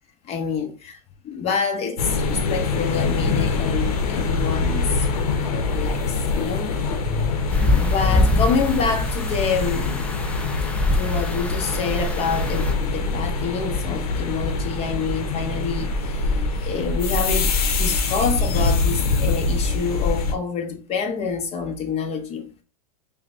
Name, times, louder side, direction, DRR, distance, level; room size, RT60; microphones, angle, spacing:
voice 1, 0.3-1.0 1.2-5.1 5.4-6.8 7.7-10.1 10.9-16.4 16.6-17.5 17.8-22.5, left 5 dB, 35° left, 1.0 m, -27 dB
sound 1, 2.0-20.3, left 3 dB, 75° left, 0.9 m, -24 dB
sound 2, 7.5-12.7, left 2 dB, 5° left, 0.5 m, -24 dB
5.5 x 2.2 x 2.6 m
hypercardioid pair, 120°, 19 cm